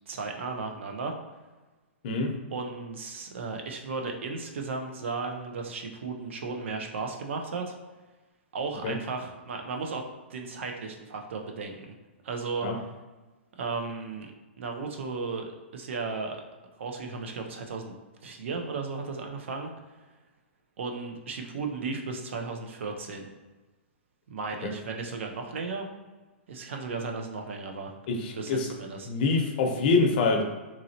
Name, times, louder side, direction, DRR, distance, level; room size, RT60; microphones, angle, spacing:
voice 1, 0.1-1.1 2.5-7.7 8.5-10.0 10.3-11.9 12.2-12.7 13.6-14.3 14.6-16.4 16.8-19.7 20.8-23.3 24.3-25.9 26.5-27.9 28.3-29.1, right 4 dB, 70° right, 3 dB, 0.6 m, -35 dB
voice 2, 28.1-28.7 29.1-30.4, left 3 dB, 45° left, 2 dB, 0.7 m, -25 dB
3.7 x 3.0 x 2.8 m, 1.2 s
hypercardioid pair, 145°, 7 cm